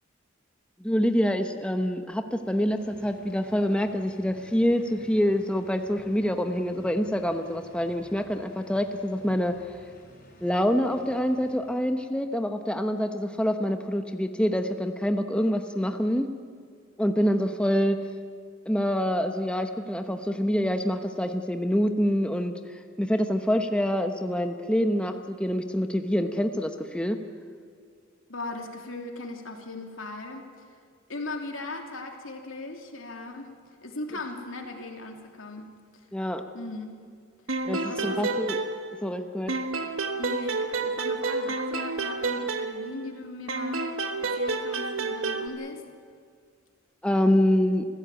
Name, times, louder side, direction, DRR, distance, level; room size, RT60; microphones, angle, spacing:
voice 1, 0.8-9.5 10.4-16.3 17.0-18.0 18.7-27.2 36.1-36.4 37.6-38.6 39.0-39.5 47.0-47.9, equal, 5° left, 6 dB, 0.9 m, -26 dB
sound 1, 2.2-12.2, equal, 45° left, 6.0 m, -54 dB
voice 2, 28.3-30.5 31.1-33.5 33.8-36.0 36.5-36.9 37.8-38.3 40.2-43.9 44.2-45.8, left 2 dB, 80° left, 3 dB, 2.9 m, -38 dB
sound 2, 37.5-39.2 39.5-43.1 43.5-45.5, right 3 dB, 85° right, 1.5 m, -30 dB
27.5 x 15.5 x 9.0 m, 2.1 s
head